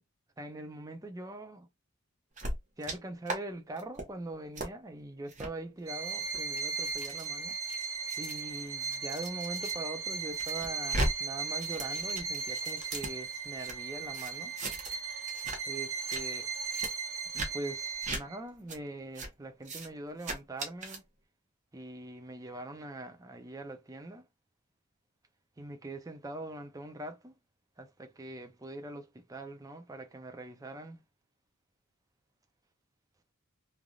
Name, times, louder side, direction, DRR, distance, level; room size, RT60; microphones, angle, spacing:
voice 1, 0.4-1.7 2.8-7.6 8.2-14.6 15.7-16.5 17.3-21.0 21.7-24.3 25.6-27.3 27.8-31.0, right 2 dB, 15° right, 0.4 m, -42 dB
sound 1, 2.4-3.0 3.3-3.4 3.8-4.1 4.6-4.7 5.3-5.5 6.2-9.7 10.1-11.1 11.4-13.7 14.1-15.0 15.3-15.6 15.9-16.2 16.7-16.9 17.3-17.5 18.0-18.2 18.7-18.8 19.2-19.3 19.6-19.9 20.2-21.0, right 1 dB, 35° right, 0.8 m, -37 dB
Bowed string instrument, 5.9-18.4, right 5 dB, 80° right, 0.9 m, -37 dB
3.3 x 2.5 x 2.3 m
head